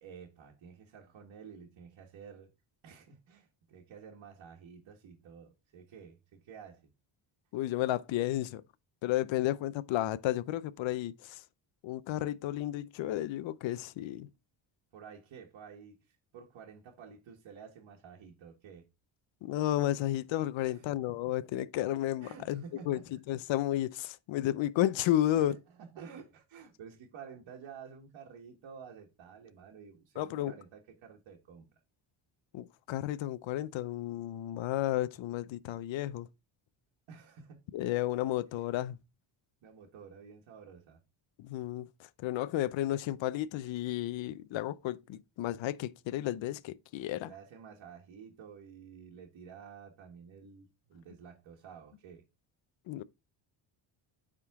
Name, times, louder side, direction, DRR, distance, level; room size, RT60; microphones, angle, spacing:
voice 1, 0.0-2.5 2.8-6.9 14.9-18.9 20.6-21.2 22.2-23.2 25.3-31.7 37.1-37.6 39.6-41.0 47.2-52.3, right 6 dB, 60° right, 1.5 m, -51 dB
voice 2, 7.5-8.6 9.0-11.4 11.8-14.3 19.4-23.0 23.3-25.5 30.2-30.5 32.5-36.3 37.7-39.0 41.4-41.9 42.2-47.3 52.9-53.0, left 13 dB, 65° left, 0.6 m, -32 dB
9.1 x 3.7 x 3.5 m
cardioid pair, 140°, 50 cm